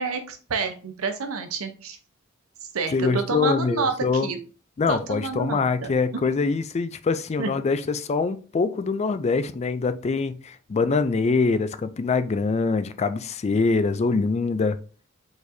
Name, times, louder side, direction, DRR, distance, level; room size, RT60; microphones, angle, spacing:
voice 1, 0.0-2.0 2.7-3.9 4.2-4.4 4.9-5.9 7.4-7.5, right 4 dB, 85° right, 0.7 m, -28 dB
voice 2, 2.9-4.3 4.8-14.8, left 4 dB, 30° left, 0.3 m, -24 dB
4.8 x 4.1 x 2.6 m
head